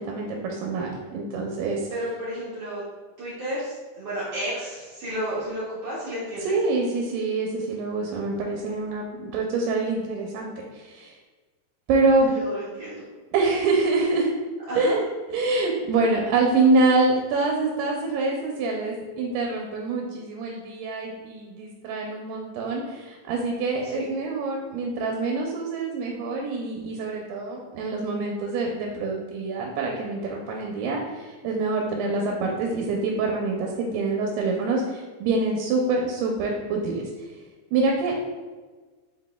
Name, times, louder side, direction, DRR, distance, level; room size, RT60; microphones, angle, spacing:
voice 1, 0.0-1.9 6.4-11.2 11.9-12.3 13.3-14.3 14.8-15.0 15.3-37.1 37.7-38.2, right 3 dB, 85° right, 0 dB, 2.1 m, -25 dB
voice 2, 1.9-2.8 3.2-6.6 12.2-13.0 14.7-15.0 23.8-24.1, equal, 70° right, -9 dB, 1.5 m, -32 dB
4.8 x 4.0 x 2.2 m, 1.3 s
omnidirectional pair, 3.7 m